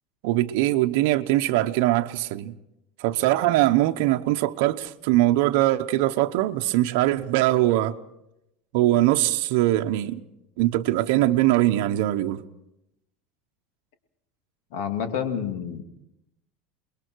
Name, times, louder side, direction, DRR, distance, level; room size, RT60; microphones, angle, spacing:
voice 1, 0.2-2.5 3.0-8.0 8.7-10.2 10.6-12.4, right 15 dB, 65° right, 0.9 m, -22 dB
voice 2, 14.7-15.8, left 8 dB, 65° left, 2.5 m, -29 dB
29.0 x 21.5 x 4.7 m
supercardioid pair, 160°, 0 cm